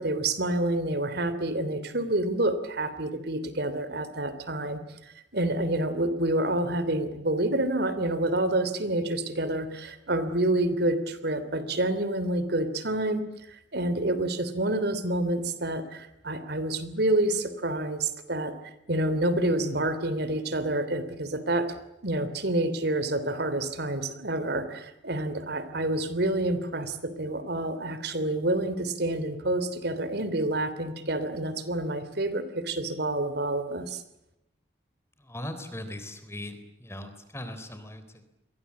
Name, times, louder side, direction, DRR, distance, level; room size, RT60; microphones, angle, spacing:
voice 1, 0.0-18.5 18.9-21.7 22.0-34.0, right 1 dB, 60° right, 12 dB, 3.1 m, -28 dB
voice 2, 35.2-38.2, left 1 dB, 15° left, 9 dB, 3.9 m, -39 dB
29.5 x 23.0 x 8.5 m, 0.86 s
head